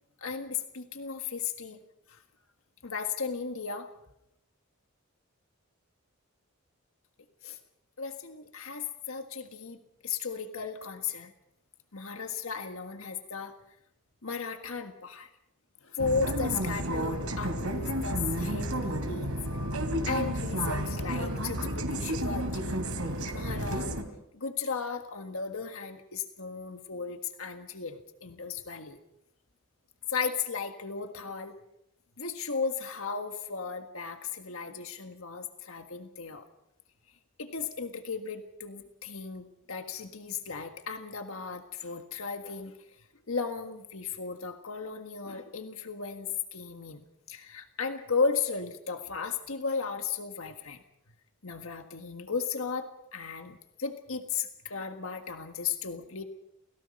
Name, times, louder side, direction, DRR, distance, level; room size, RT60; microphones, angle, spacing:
voice 1, 0.2-1.8 2.1-2.2 2.8-3.9 7.4-7.6 8.0-11.3 11.9-13.5 14.2-15.3 15.8-19.4 20.1-22.8 23.3-24.0 24.3-29.0 30.1-31.5 32.2-36.5 37.4-42.8 43.3-50.8 51.4-56.2, left 5 dB, 75° left, 6 dB, 1.6 m, -35 dB
sound 1, 16.0-24.0, right 1 dB, 85° right, 3.0 m, -31 dB
29.0 x 18.5 x 5.4 m, 0.81 s
head